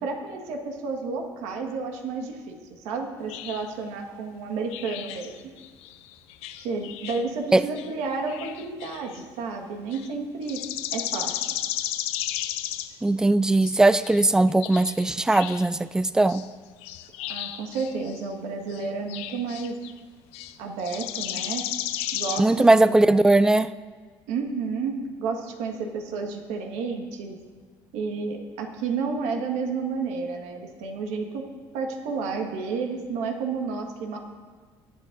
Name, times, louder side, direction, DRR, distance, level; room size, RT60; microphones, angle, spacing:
voice 1, 0.0-5.5 6.6-10.6 10.9-11.5 17.3-19.7 20.6-21.7 22.1-23.1 24.3-27.4 27.9-31.4 31.7-34.2, right 4 dB, 85° right, 2 dB, 1.6 m, -31 dB
sound 1, 3.3-3.7 4.7-7.3 7.8-9.2 9.9-10.1 10.4-13.0 13.6-15.7 16.3-16.5 16.8-18.3 18.7-20.0 20.3-20.5 20.8-22.4, left 12 dB, 80° left, 0.6 m, -34 dB
voice 2, 13.0-16.5 22.4-23.7, right 2 dB, 5° right, 15 dB, 0.3 m, -19 dB
19.5 x 8.3 x 2.6 m, 1.4 s
supercardioid pair, 100°, 10 cm